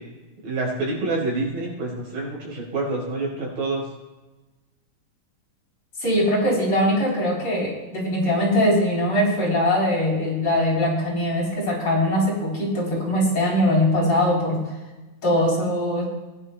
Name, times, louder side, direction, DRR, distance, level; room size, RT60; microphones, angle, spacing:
voice 1, 0.4-3.8, right 2 dB, 85° right, -3 dB, 5.9 m, -27 dB
voice 2, 6.0-14.7 15.2-16.0, left 1 dB, 40° left, -4 dB, 4.3 m, -21 dB
20.0 x 10.5 x 2.2 m, 1.1 s
omnidirectional pair, 3.7 m